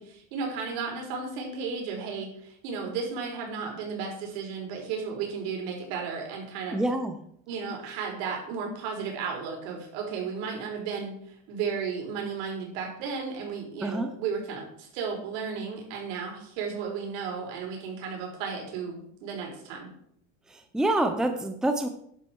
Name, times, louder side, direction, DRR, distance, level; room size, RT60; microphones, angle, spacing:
voice 1, 0.0-6.8 7.5-11.2 11.5-19.9, right 5 dB, 70° right, 1 dB, 5.3 m, -34 dB
voice 2, 6.7-7.2 13.8-14.1 20.5-21.9, right 1 dB, ahead, 6 dB, 0.9 m, -27 dB
11.0 x 10.5 x 4.8 m, 0.68 s
supercardioid pair, 140°, 34 cm